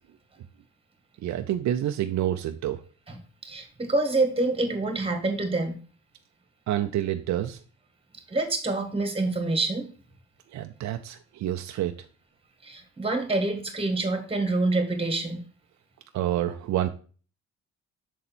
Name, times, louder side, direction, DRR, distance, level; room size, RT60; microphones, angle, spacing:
voice 1, 1.2-2.8 6.7-7.6 10.5-11.9 16.1-16.9, right 12 dB, 65° right, 6 dB, 0.6 m, -28 dB
voice 2, 3.4-5.8 8.3-9.9 12.6-15.4, right 2 dB, 20° right, 5 dB, 1.7 m, -26 dB
6.5 x 4.1 x 4.2 m, 0.39 s
cardioid pair, 90°, 30 cm